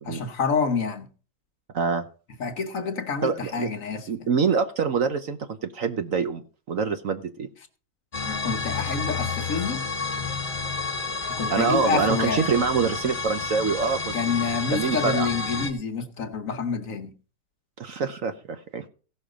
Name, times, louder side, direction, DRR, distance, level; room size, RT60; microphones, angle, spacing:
voice 1, 0.0-1.1 2.4-4.1 8.2-9.8 11.3-12.5 14.1-17.1, left 5 dB, 55° left, 1.3 m, -28 dB
voice 2, 1.7-2.0 3.2-3.7 4.1-7.5 11.5-14.1 14.7-15.3 17.8-18.9, right 5 dB, 55° right, 1.1 m, -25 dB
sound 1, 8.1-15.7, left 4 dB, 30° left, 1.6 m, -30 dB
16.5 x 6.4 x 5.0 m
omnidirectional pair, 1.9 m